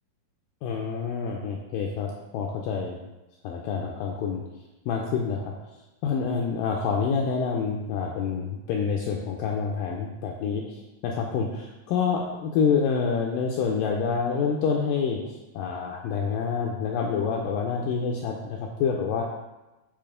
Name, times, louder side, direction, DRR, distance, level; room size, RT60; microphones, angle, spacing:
voice 1, 0.6-3.0 3.4-4.4 4.9-5.5 6.0-19.2, left 6 dB, 80° left, -1 dB, 2.0 m, -27 dB
8.8 x 3.1 x 4.9 m, 1.0 s
omnidirectional pair, 4.5 m